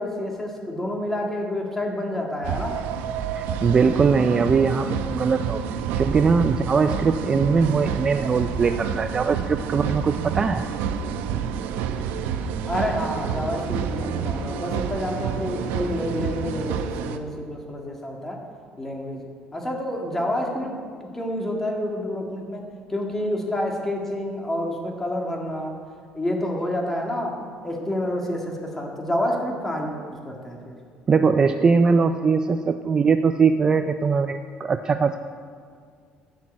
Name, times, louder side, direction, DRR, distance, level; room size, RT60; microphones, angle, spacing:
voice 1, 0.0-2.8 12.7-18.4 18.8-19.2 19.5-25.8 26.1-30.8, left 1 dB, 10° left, 0 dB, 1.9 m, -28 dB
sound 1, 2.4-17.2, right 7 dB, 85° right, 0.8 m, -29 dB
voice 2, 3.4-5.6 6.0-10.6 31.1-35.2, right 5 dB, 25° right, 8 dB, 0.4 m, -21 dB
13.5 x 6.2 x 8.6 m, 2.1 s
cardioid pair, 150°, 3 cm